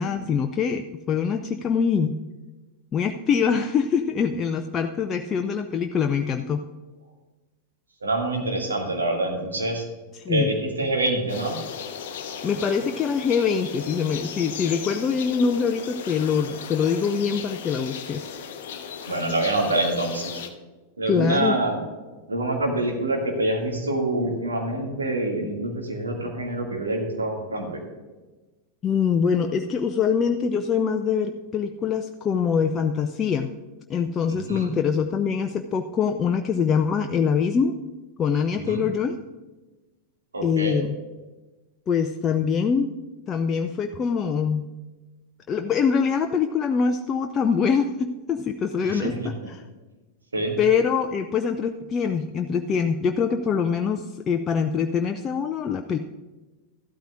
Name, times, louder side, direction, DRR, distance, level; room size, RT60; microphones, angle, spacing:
voice 1, 0.0-2.2 2.9-6.6 10.2-10.5 12.4-18.4 21.1-21.6 28.8-33.5 33.9-37.7 38.2-39.2 40.4-40.9 41.9-42.9 43.3-44.7 45.5-49.6 50.6-56.0, left 6 dB, 25° left, 5 dB, 0.5 m, -24 dB
voice 2, 8.0-9.8 10.3-11.5 19.1-20.4 21.0-21.8 22.3-27.8 34.3-34.7 38.7-38.8 40.3-40.8 48.8-49.3 50.3-50.6, right 2 dB, 75° right, 0 dB, 2.2 m, -26 dB
sound 1, 11.3-20.5, left 7 dB, 55° left, 0.8 m, -36 dB
13.5 x 12.5 x 2.5 m, 1.2 s
figure-of-eight pair, 90°, 0 cm